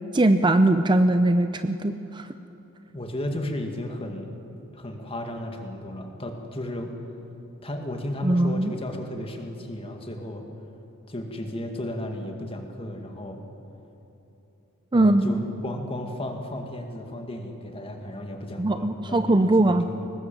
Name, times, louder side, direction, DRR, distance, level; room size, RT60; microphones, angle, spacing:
voice 1, 0.1-2.2 8.2-8.7 14.9-15.4 18.6-19.9, right 1 dB, 20° right, 9 dB, 0.5 m, -20 dB
voice 2, 2.9-4.3 4.7-6.9 7.6-10.5 11.1-13.4 14.9-20.1, left 1 dB, 25° left, 3 dB, 2.2 m, -34 dB
22.5 x 19.0 x 7.7 m, 3.0 s
head